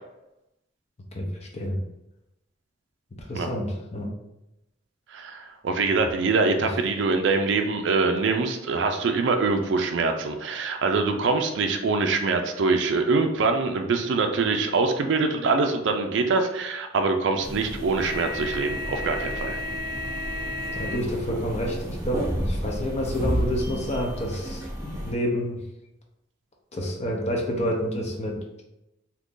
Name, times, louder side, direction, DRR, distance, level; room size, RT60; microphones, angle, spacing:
voice 1, 1.1-1.8 3.2-4.1 6.6-6.7 20.7-25.6 26.7-28.6, equal, 35° left, 0 dB, 0.6 m, -29 dB
voice 2, 5.1-19.6, right 4 dB, 65° right, 5 dB, 0.4 m, -24 dB
sound 1, 17.4-25.1, equal, 15° right, 0.7 m, -31 dB
2.9 x 2.5 x 3.6 m, 0.91 s
head